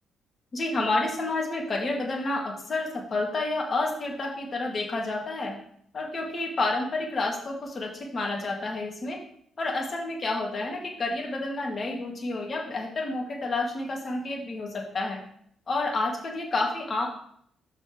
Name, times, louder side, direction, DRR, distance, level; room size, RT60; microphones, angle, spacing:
voice 1, 0.5-5.6 5.9-9.2 9.6-15.2 15.7-17.1, left 2 dB, 40° left, -1 dB, 2.4 m, -29 dB
5.9 x 4.6 x 6.1 m, 0.64 s
supercardioid pair, 70°, 0 cm